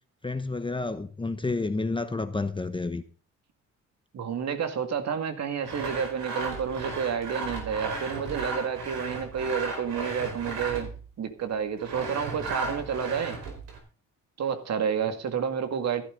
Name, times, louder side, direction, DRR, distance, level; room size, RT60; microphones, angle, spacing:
voice 1, 0.2-3.0, left 3 dB, 15° left, 1.0 m, -30 dB
voice 2, 4.1-10.9 11.2-13.4 14.4-16.0, right 7 dB, 60° right, 2.3 m, -30 dB
Sawing, 5.6-11.0 11.8-13.8, right 3 dB, 85° right, 4.8 m, -35 dB
14.0 x 12.5 x 3.9 m
cardioid pair, 90°, 30 cm